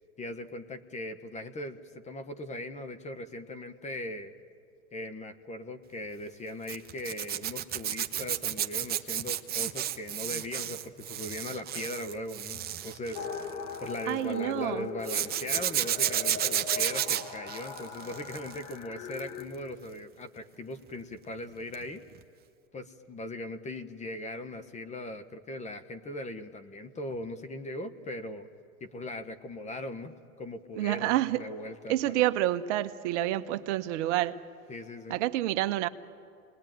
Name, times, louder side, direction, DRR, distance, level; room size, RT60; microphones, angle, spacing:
voice 1, 0.2-4.3 4.9-13.3 13.8-22.0 22.7-28.5 28.8-32.2 34.7-35.2, left 1 dB, 15° left, 1.0 m, -39 dB
Zipper (clothing), 6.7-14.1 15.0-18.7 19.1-19.4 21.7-21.9 22.2-22.3, right 11 dB, 20° right, 0.8 m, -32 dB
sound 1, 13.1-19.5, left 6 dB, 75° left, 2.0 m, -40 dB
voice 2, 14.1-14.9 30.7-31.4 31.9-34.4 35.1-35.9, right 14 dB, 55° right, 1.0 m, -28 dB
29.5 x 20.5 x 9.2 m
hypercardioid pair, 125°, 44 cm